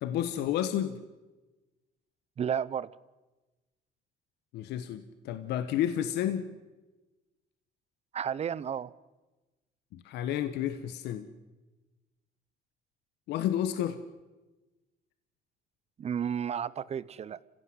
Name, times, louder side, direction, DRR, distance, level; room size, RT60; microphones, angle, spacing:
voice 1, 0.0-1.0 4.5-6.5 9.9-11.3 13.3-14.0, left 11 dB, 80° left, 11 dB, 1.3 m, -31 dB
voice 2, 2.4-2.9 8.1-8.9 16.0-17.4, right 8 dB, 40° right, 20 dB, 0.8 m, -32 dB
29.0 x 16.0 x 8.0 m, 1.2 s
cardioid pair, 110°, 17 cm